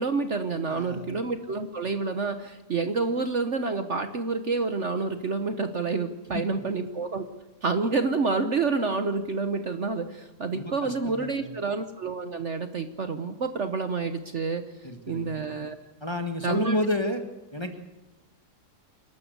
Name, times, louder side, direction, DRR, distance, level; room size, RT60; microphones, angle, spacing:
voice 1, 0.0-7.3 7.6-14.7 15.1-15.8 16.4-16.8, right 4 dB, 50° right, 8 dB, 1.3 m, -28 dB
voice 2, 0.7-1.2 6.3-6.4 10.5-11.5 14.8-15.5 16.0-17.2 17.5-17.8, left 1 dB, 15° left, 5 dB, 1.7 m, -31 dB
28.5 x 12.5 x 8.1 m, 1.1 s
omnidirectional pair, 1.8 m